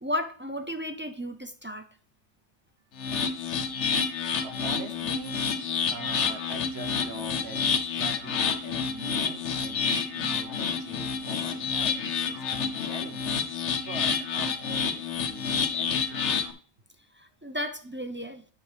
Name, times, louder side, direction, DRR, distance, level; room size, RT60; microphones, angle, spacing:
voice 1, 0.0-1.9 17.2-18.4, left 1 dB, 15° right, 0.4 m, -34 dB
sound 1, 3.0-16.5, left 6 dB, 90° left, 1.1 m, -29 dB
voice 2, 4.4-5.4 5.9-13.5 13.7-16.2, right 3 dB, 65° right, 1.5 m, -43 dB
9.3 x 5.9 x 3.3 m
omnidirectional pair, 1.1 m